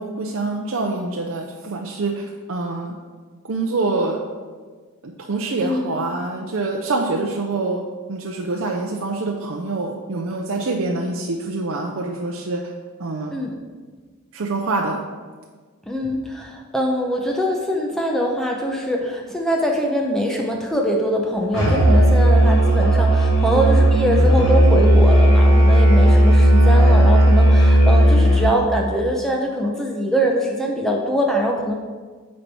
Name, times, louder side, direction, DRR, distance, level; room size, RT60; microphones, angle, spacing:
voice 1, 0.0-2.9 3.5-4.2 5.0-7.8 8.1-12.6 13.0-13.3 14.3-15.0, right 3 dB, 65° right, 0 dB, 0.6 m, -25 dB
voice 2, 5.6-6.0 13.3-13.5 15.9-31.8, equal, ahead, 0 dB, 0.6 m, -23 dB
Musical instrument, 21.5-28.6, right 1 dB, 70° left, 2.1 m, -14 dB
8.7 x 4.4 x 4.2 m, 1.5 s
head